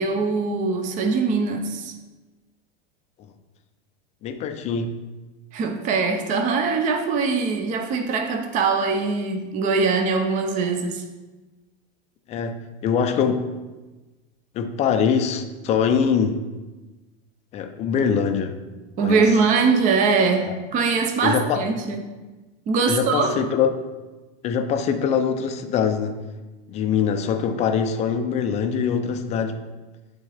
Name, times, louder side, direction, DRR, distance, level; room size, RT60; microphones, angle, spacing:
voice 1, 0.0-1.9 5.5-11.0 19.0-22.0 22.7-23.3, right 4 dB, 25° right, 5 dB, 0.6 m, -22 dB
voice 2, 4.2-4.9 12.3-13.5 14.5-16.4 17.5-18.6 19.0-19.3 21.2-21.6 22.9-23.7 24.4-26.2 26.7-29.6, left 7 dB, 20° left, 7 dB, 0.4 m, -23 dB
11.0 x 3.7 x 3.4 m, 1.2 s
supercardioid pair, 145°, 31 cm